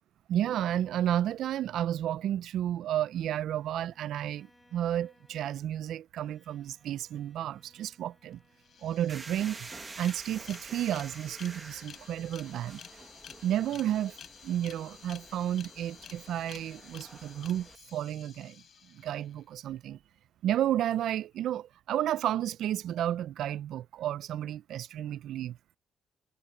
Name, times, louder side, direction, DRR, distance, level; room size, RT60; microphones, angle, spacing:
voice 1, 0.3-8.4 8.8-12.8 13.4-14.1 14.4-18.6 18.9-20.0 20.4-25.6, right 11 dB, 75° right, 0.3 m, -32 dB
Bowed string instrument, 3.5-9.8, left 1 dB, 10° left, 5.5 m, -67 dB
sound 1, 8.3-8.4 8.6-19.4, left 8 dB, 60° left, 4.9 m, -52 dB
sound 2, 9.1-17.8, right 3 dB, 30° right, 1.2 m, -49 dB
cardioid pair, 90°, 0 cm